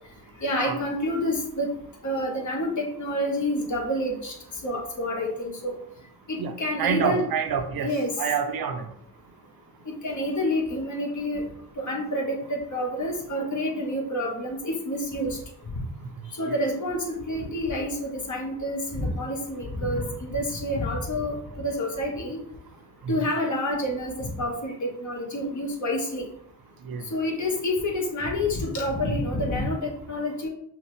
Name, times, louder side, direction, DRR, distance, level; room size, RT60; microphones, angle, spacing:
voice 1, 0.4-1.7 2.0-4.3 4.6-5.8 6.3-7.3 7.8-8.1 10.0-11.4 11.8-15.4 16.3-22.4 23.1-26.3 27.1-30.5, left 1 dB, 45° left, 0 dB, 1.5 m, -28 dB
voice 2, 6.4-7.9 8.2-8.9 26.9-27.0, right 7 dB, 55° right, 6 dB, 0.7 m, -27 dB
5.6 x 2.2 x 3.3 m, 0.70 s
supercardioid pair, 55°, 42 cm